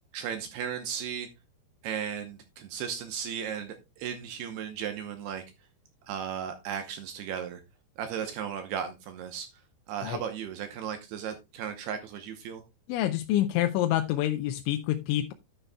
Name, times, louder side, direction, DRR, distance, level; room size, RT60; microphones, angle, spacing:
voice 1, 0.1-1.3 1.8-5.4 6.0-7.6 8.0-9.5 9.9-12.6, right 8 dB, 75° right, 2.6 m, -35 dB
voice 2, 12.9-15.3, left 13 dB, 85° left, 3.0 m, -27 dB
11.0 x 10.5 x 2.2 m
omnidirectional pair, 5.3 m